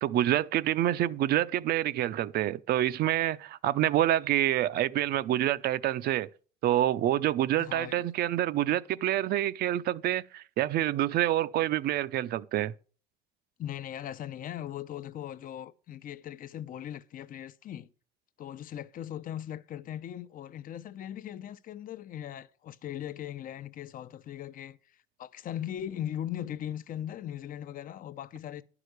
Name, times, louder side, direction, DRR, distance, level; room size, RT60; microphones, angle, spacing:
voice 1, 0.0-6.3 6.6-12.7, right 13 dB, 70° right, 0.6 m, -27 dB
voice 2, 7.6-8.0 13.6-17.9 18.4-28.6, left 11 dB, 55° left, 0.8 m, -39 dB
11.0 x 4.9 x 8.0 m
cardioid pair, 110°, 17 cm